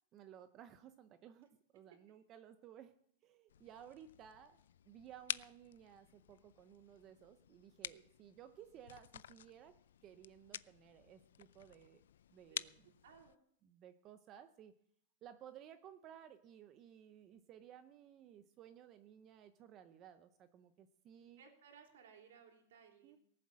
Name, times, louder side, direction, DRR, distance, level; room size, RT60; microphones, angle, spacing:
voice 1, 0.1-3.0 3.2-12.0 12.3-12.9 13.6-14.7 15.2-21.4 23.0-23.2, right 9 dB, 25° right, 10 dB, 0.7 m, -58 dB
sound 1, 3.5-13.4, left 10 dB, 85° left, 0.5 m, -50 dB
voice 2, 13.0-13.3 21.2-23.2, right 7 dB, 70° right, 4 dB, 3.5 m, -61 dB
18.5 x 7.7 x 7.6 m, 0.68 s
supercardioid pair, 165°, 0 cm